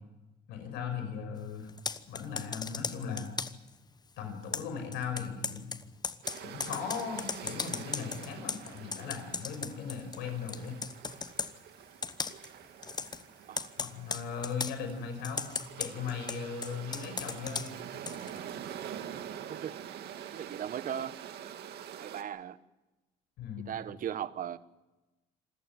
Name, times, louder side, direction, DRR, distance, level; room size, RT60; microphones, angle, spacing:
voice 1, 0.5-1.7 2.1-3.3 4.2-5.7 6.4-10.8 13.8-15.4 15.8-17.7 23.4-23.8, left 6 dB, 85° left, 6.1 m, -38 dB
Computer keyboard, 1.7-3.7 4.5-10.2 10.5-11.5 12.0-12.5 12.8-13.2 13.6-14.8 15.2-18.4, left 5 dB, 25° left, 1.0 m, -37 dB
sound 1, 6.2-22.2, right 9 dB, 75° right, 2.3 m, -46 dB
voice 2, 20.3-21.1 22.0-22.6 23.7-24.6, right 9 dB, 55° right, 1.2 m, -37 dB
27.0 x 14.5 x 9.2 m
cardioid pair, 110°, 17 cm